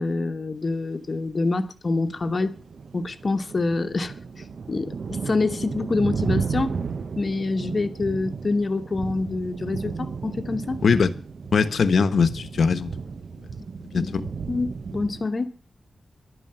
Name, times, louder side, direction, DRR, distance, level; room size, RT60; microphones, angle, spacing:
voice 1, 0.0-2.5 2.9-6.8 7.2-10.8 13.9-14.1 14.5-15.5, left 3 dB, 35° left, 1.1 m, -26 dB
sound 1, 2.0-15.3, right 5 dB, 55° right, 0.7 m, -34 dB
voice 2, 11.5-12.9 13.9-14.2, left 5 dB, 70° left, 1.1 m, -20 dB
12.0 x 9.3 x 7.7 m
wide cardioid pair, 175°, 0 cm